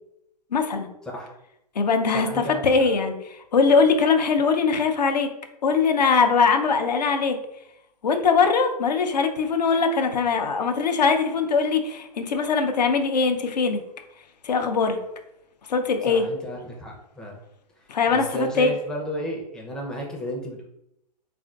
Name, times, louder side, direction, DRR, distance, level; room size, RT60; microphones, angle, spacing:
voice 1, 0.5-0.9 1.8-5.3 5.6-7.4 8.0-13.8 14.4-15.0 15.7-16.3 17.9-18.7, left 5 dB, 75° left, 6 dB, 0.5 m, -21 dB
voice 2, 1.0-1.3 2.1-2.9 16.1-17.4 18.1-20.7, equal, 5° left, -1 dB, 0.4 m, -33 dB
3.5 x 2.4 x 2.3 m, 0.82 s
figure-of-eight pair, 110°, 21 cm